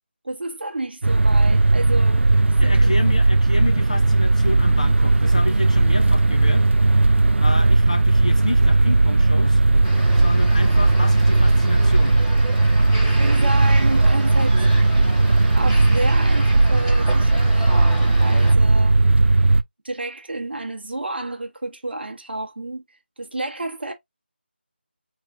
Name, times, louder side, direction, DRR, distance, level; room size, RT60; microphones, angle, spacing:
voice 1, 0.2-2.3 2.6-2.9 13.0-14.7 15.6-19.0 19.8-22.8 23.2-23.9, right 2 dB, 65° right, 1.2 m, -30 dB
sound 1, 1.0-19.6, right 2 dB, 85° right, 0.4 m, -17 dB
voice 2, 2.6-6.7 7.4-9.6 10.2-12.2, left 2 dB, 35° left, 0.5 m, -30 dB
sound 2, 9.8-18.5, right 1 dB, 5° right, 1.0 m, -34 dB
3.6 x 3.0 x 2.4 m
figure-of-eight pair, 180°, 6 cm